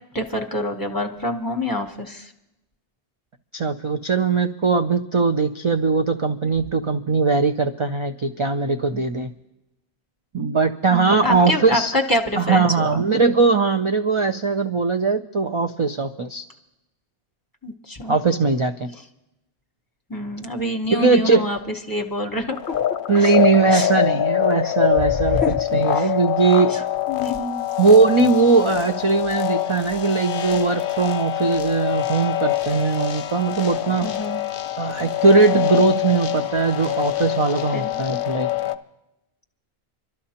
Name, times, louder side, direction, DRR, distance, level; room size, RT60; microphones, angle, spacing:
voice 1, 0.1-2.3 8.9-9.0 10.9-13.0 17.6-18.2 20.1-21.6 21.9-22.6 23.2-23.3 23.7-23.9 24.6-24.7 25.0-25.6 25.9-26.2 26.7-26.8 27.1-27.7 34.0-34.4 37.7-38.1, left 1 dB, 20° left, 2 dB, 1.0 m, -26 dB
voice 2, 3.5-9.3 10.3-11.9 12.4-16.4 18.1-18.9 20.9-21.4 23.1-26.9 27.8-34.1 34.8-38.5, right 4 dB, 45° right, 6 dB, 0.4 m, -20 dB
sound 1, 22.5-38.7, left 13 dB, 60° left, 0.7 m, -24 dB
26.5 x 12.5 x 2.9 m, 0.94 s
omnidirectional pair, 1.1 m